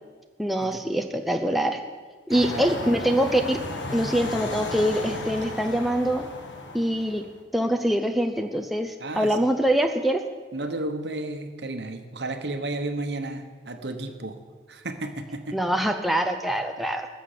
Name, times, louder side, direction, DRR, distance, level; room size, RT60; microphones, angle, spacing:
voice 1, 0.4-1.8 2.3-3.6 3.9-6.3 6.7-7.2 7.5-10.2 15.5-17.1, right 1 dB, ahead, 4 dB, 0.6 m, -24 dB
sound 1, 2.3-7.3, left 2 dB, 90° left, 1.5 m, -34 dB
voice 2, 2.3-2.7 9.0-9.6 10.5-14.4 14.7-15.6, right 2 dB, 70° right, 6 dB, 1.1 m, -33 dB
14.5 x 6.8 x 6.7 m, 1.4 s
head